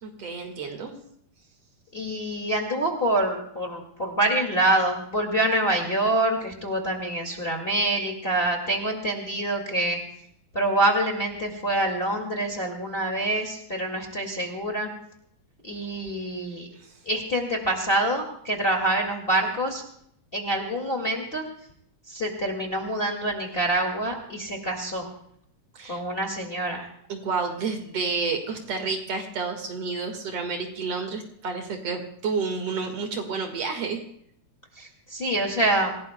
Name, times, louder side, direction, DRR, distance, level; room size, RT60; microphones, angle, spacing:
voice 1, 0.0-0.9 25.7-26.0 27.1-34.0, right 4 dB, 60° right, 4 dB, 2.7 m, -30 dB
voice 2, 1.9-10.0 10.5-14.9 15.6-16.7 17.1-19.8 20.3-21.4 22.1-25.1 25.9-26.9 34.8-35.9, right 1 dB, 20° left, 1 dB, 2.0 m, -26 dB
27.0 x 17.5 x 2.2 m, 0.68 s
omnidirectional pair, 3.3 m